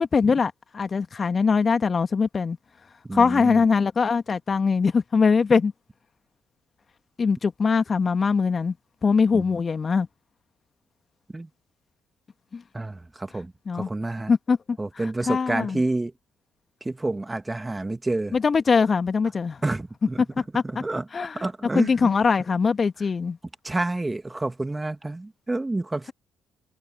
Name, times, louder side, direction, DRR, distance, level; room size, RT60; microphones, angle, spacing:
voice 1, 0.0-2.6 3.1-5.7 7.2-8.7 9.0-10.1 12.5-12.6 13.7-13.9 14.3-14.8 15.3-15.8 18.3-19.6 20.5-20.6 21.1-21.4 21.7-23.4, left 5 dB, 40° left, 2.1 m, -22 dB
voice 2, 3.0-3.6 9.3-9.4 11.3-11.5 12.7-14.3 14.8-16.1 16.8-18.3 19.6-20.2 20.6-22.1 23.6-26.1, right 2 dB, 20° right, 2.3 m, -29 dB
figure-of-eight pair, 45°, 0 cm